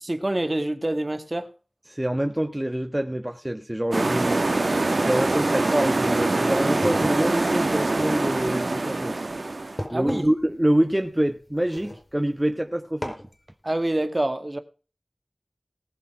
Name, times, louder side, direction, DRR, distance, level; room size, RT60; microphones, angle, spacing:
voice 1, 0.0-1.5 5.5-5.9 9.9-10.2 13.6-14.6, right 1 dB, 40° right, 2.0 m, -26 dB
voice 2, 1.9-4.4 5.0-9.2 9.9-13.1, right 1 dB, 20° right, 1.2 m, -26 dB
sound 1, 3.9-9.8, right 2 dB, 80° right, 1.7 m, -24 dB
sound 2, 6.6-12.5 13.0-13.4, left 1 dB, 30° left, 4.9 m, -39 dB
19.5 x 7.0 x 4.5 m
wide cardioid pair, 45°, 0 cm